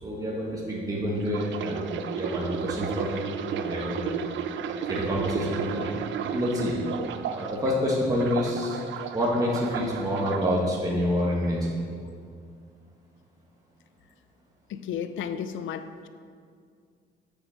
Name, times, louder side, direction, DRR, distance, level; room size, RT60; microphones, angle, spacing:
voice 1, 0.0-4.2 4.9-5.9 6.3-6.8 7.3-8.8 9.1-11.7, equal, 20° right, 1.6 m, -28 dB
sound 1, 1.2-7.7 8.1-10.6 11.2-11.5, right 7 dB, 70° right, 0.5 m, -33 dB
voice 2, 14.7-16.1, left 8 dB, 80° left, 0.5 m, -33 dB
6.4 x 6.4 x 6.4 m
cardioid pair, 90°, 20 cm